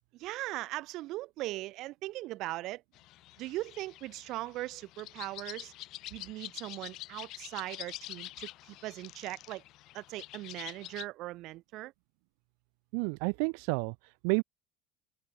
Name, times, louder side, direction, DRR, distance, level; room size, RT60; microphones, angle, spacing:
voice 1, 0.1-2.8 3.4-5.7 6.1-8.5 8.8-9.6 9.9-11.9, right 17 dB, 55° right, 7.4 m, -39 dB
sound 1, 2.9-11.1, left 17 dB, 55° left, 2.7 m, -47 dB
voice 2, 12.9-14.4, right 40 dB or more, 80° right, 0.9 m, -31 dB
open air
cardioid pair, 145°, 0 cm